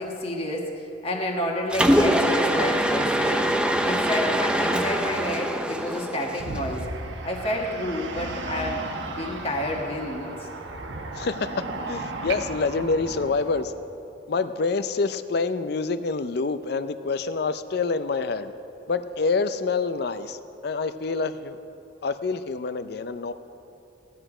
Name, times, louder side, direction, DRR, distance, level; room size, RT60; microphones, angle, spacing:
voice 1, 0.0-3.5 3.8-6.9 7.2-10.5, left 1 dB, 30° left, 0 dB, 1.4 m, -30 dB
Mechanisms, 1.7-6.8, equal, 5° right, 0.6 m, -23 dB
sound 1, 6.4-13.6, right 2 dB, 75° right, 1.1 m, -35 dB
voice 2, 11.2-13.7 14.3-18.5 18.9-20.4 20.6-21.6 22.0-23.3, left 4 dB, 60° left, 12 dB, 0.5 m, -27 dB
16.0 x 10.0 x 4.9 m, 2.7 s
head